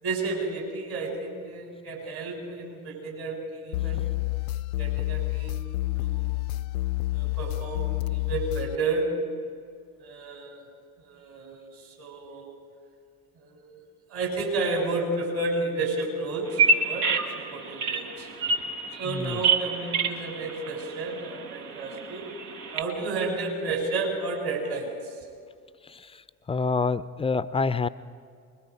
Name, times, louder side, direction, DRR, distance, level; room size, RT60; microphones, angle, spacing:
voice 1, 0.0-4.1 4.8-6.4 7.1-9.1 10.0-10.6 11.0-12.5 13.4-13.8 14.1-17.1 17.4-18.3 19.0-22.3 22.7-25.2, right 3 dB, 55° right, 0 dB, 6.9 m, -32 dB
sound 1, 3.7-8.8, left 18 dB, 70° left, 0.5 m, -29 dB
Bird vocalization bird call bird song, 16.5-22.8, right 4 dB, 75° right, 1.6 m, -28 dB
voice 2, 19.1-19.4 25.9-26.1 26.5-27.9, left 4 dB, 15° left, 16 dB, 0.4 m, -27 dB
24.5 x 21.5 x 4.9 m, 2.2 s
figure-of-eight pair, 60°, 44 cm